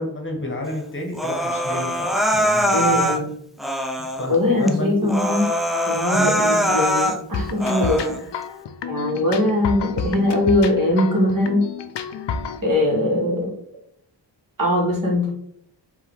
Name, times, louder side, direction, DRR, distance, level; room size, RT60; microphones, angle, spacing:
voice 1, 0.0-3.1 4.2-5.1 6.1-6.4, left 1 dB, 25° left, 1 dB, 1.1 m, -30 dB
Human voice, 1.1-3.2 3.6-4.2 4.7-4.8 5.1-7.2 7.6-8.2, equal, ahead, 0.4 m, -22 dB
voice 2, 2.7-3.3 4.3-5.5 5.9-8.2 8.9-11.7 12.6-13.5 14.6-15.3, left 1 dB, 45° right, -2 dB, 1.7 m, -21 dB
sound 1, 7.3-12.6, left 5 dB, 70° left, 0.5 m, -30 dB
4.6 x 2.7 x 3.4 m, 0.70 s
cardioid pair, 65°, 44 cm